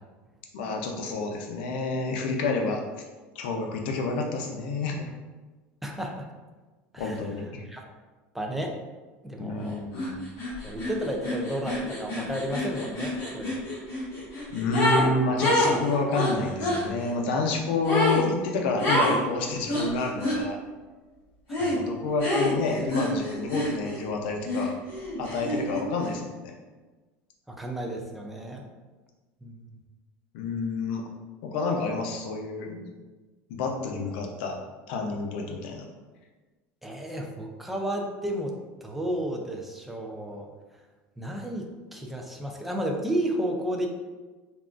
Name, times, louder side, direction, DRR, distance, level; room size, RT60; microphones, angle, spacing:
voice 1, 0.5-2.8 3.3-5.0 7.0-7.6 9.4-10.2 14.5-20.6 21.7-24.7 25.2-26.6 30.3-31.0 31.4-32.8 33.5-34.6 34.9-35.8, left 3 dB, 80° left, 2 dB, 0.5 m, -29 dB
voice 2, 5.8-6.3 6.9-7.2 7.7-7.8 8.3-8.8 9.2-9.8 10.6-13.6 21.5-21.8 27.5-28.7 29.4-29.8 36.8-38.5 38.8-40.5 41.2-43.9, right 1 dB, 5° right, 1 dB, 0.3 m, -32 dB
sound 1, 9.9-10.1 10.4-15.1 15.4-16.8 17.8-18.2 18.8-19.2 19.7-20.4 21.5-21.8 22.2-24.1 24.4-25.8, left 1 dB, 45° left, 1.5 m, -27 dB
3.5 x 2.4 x 2.4 m, 1.3 s
cardioid pair, 150°, 5 cm